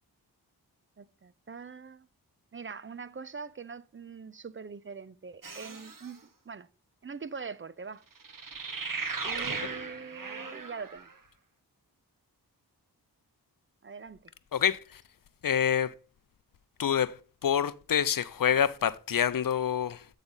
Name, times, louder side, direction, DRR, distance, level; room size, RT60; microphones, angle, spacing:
voice 1, 1.0-2.1 2.5-6.7 7.0-8.0 9.2-11.1 13.8-14.3, right 5 dB, 30° right, 0.5 m, -43 dB
sound 1, 5.4-6.1 8.2-11.1, right 4 dB, 55° right, 1.4 m, -37 dB
voice 2, 14.5-15.0 15.4-15.9 16.8-20.1, left 8 dB, 55° left, 0.6 m, -27 dB
8.3 x 4.0 x 5.4 m
cardioid pair, 50°, 39 cm